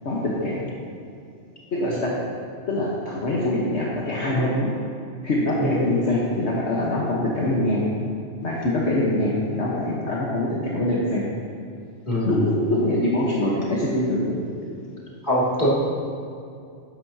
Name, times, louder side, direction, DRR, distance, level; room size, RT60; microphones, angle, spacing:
voice 1, 0.0-0.7 1.7-2.1 2.7-4.7 5.2-7.8 8.4-11.2 12.2-14.4, left 1 dB, 60° left, -5 dB, 1.6 m, -24 dB
voice 2, 15.2-15.7, equal, 35° left, -7 dB, 2.7 m, -23 dB
13.5 x 10.5 x 2.8 m, 2.4 s
omnidirectional pair, 1.3 m